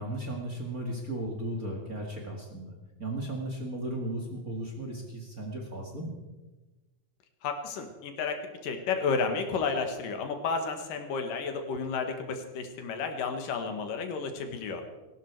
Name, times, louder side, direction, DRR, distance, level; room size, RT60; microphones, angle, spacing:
voice 1, 0.0-2.7 3.0-6.1, right 1 dB, 30° right, 1 dB, 1.9 m, -35 dB
voice 2, 7.4-14.8, left 5 dB, 80° left, 6 dB, 3.2 m, -32 dB
18.5 x 15.5 x 4.8 m, 1.1 s
omnidirectional pair, 3.8 m